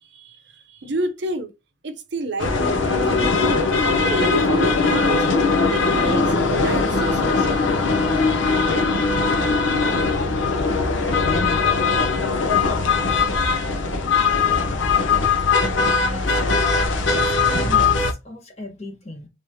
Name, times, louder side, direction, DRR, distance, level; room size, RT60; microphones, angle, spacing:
voice 1, 0.1-1.5 1.8-3.7 4.0-7.6, right 1 dB, 60° right, 0.7 m, -29 dB
sound 1, 2.4-18.1, left 4 dB, 75° left, 0.7 m, -20 dB
voice 2, 16.0-19.3, left 2 dB, 35° left, 1.1 m, -37 dB
3.5 x 3.1 x 2.7 m
head